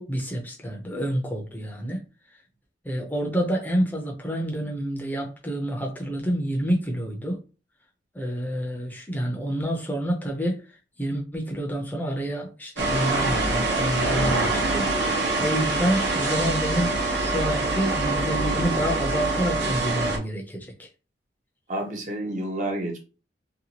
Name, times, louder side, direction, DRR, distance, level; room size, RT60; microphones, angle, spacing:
voice 1, 0.0-2.0 2.8-7.4 8.1-10.6 11.0-20.9, equal, 10° left, 0 dB, 0.5 m, -28 dB
sound 1, 12.8-20.2, right 2 dB, 80° right, 0.8 m, -25 dB
voice 2, 21.7-23.0, right 1 dB, 45° right, 3 dB, 0.6 m, -29 dB
2.8 x 2.2 x 2.8 m, 0.33 s
head